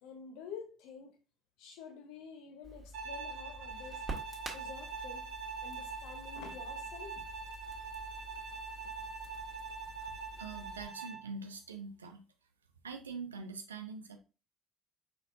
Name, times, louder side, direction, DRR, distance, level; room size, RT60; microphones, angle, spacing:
voice 1, 0.0-1.2 1.6-4.0 4.5-5.3 5.6-7.2, left 6 dB, 70° left, 1.1 m, -49 dB
Crackle, 2.6-10.9, right 2 dB, 30° right, 1.7 m, -49 dB
Bowed string instrument, 2.9-11.3, right 4 dB, 65° right, 1.0 m, -43 dB
voice 2, 10.4-12.2 12.8-14.2, right 4 dB, 90° right, 0.6 m, -44 dB
4.6 x 4.2 x 2.6 m
hypercardioid pair, 55°, 0 cm